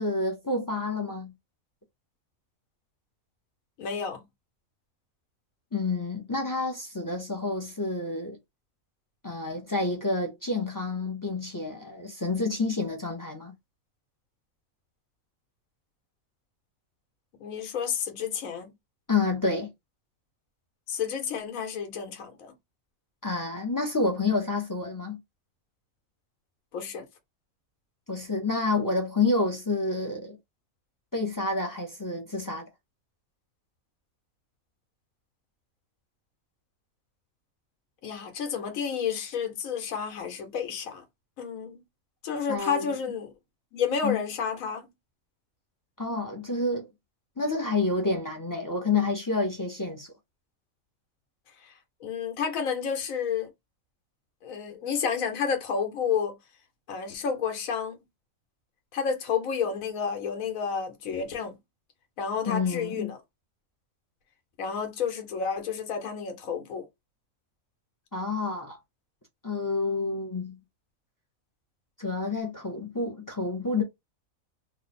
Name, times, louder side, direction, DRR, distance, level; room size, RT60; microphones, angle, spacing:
voice 1, 0.0-1.3 5.7-8.4 9.2-13.5 19.1-19.7 23.2-25.2 28.1-30.4 31.1-32.6 42.5-42.9 44.0-44.2 46.0-46.9 47.4-50.1 62.5-63.1 68.1-68.8 69.4-70.6 72.0-73.8, left 3 dB, 35° left, 0.3 m, -29 dB
voice 2, 3.8-4.2 17.4-18.7 20.9-22.5 26.7-27.0 38.0-41.0 41.4-41.8 42.2-43.3 43.7-44.9 51.6-51.7 52.0-53.5 54.4-56.3 56.9-58.0 58.9-61.5 62.2-63.2 64.6-66.9, left 6 dB, 75° left, 1.3 m, -30 dB
2.9 x 2.0 x 4.0 m
omnidirectional pair, 1.5 m